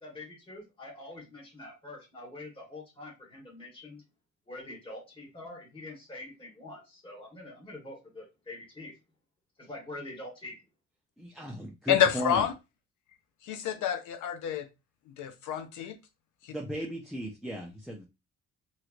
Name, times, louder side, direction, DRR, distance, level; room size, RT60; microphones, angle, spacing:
voice 1, 0.0-4.0 4.5-8.9 9.6-10.6, left 2 dB, 15° left, 1.5 m, -45 dB
voice 2, 11.2-12.5 16.5-18.1, equal, ahead, 0.7 m, -36 dB
voice 3, 11.9-12.5 13.4-14.7 15.2-16.0 16.4-16.5, left 9 dB, 75° left, 0.7 m, -28 dB
3.0 x 2.9 x 2.4 m
cardioid pair, 90°, 30 cm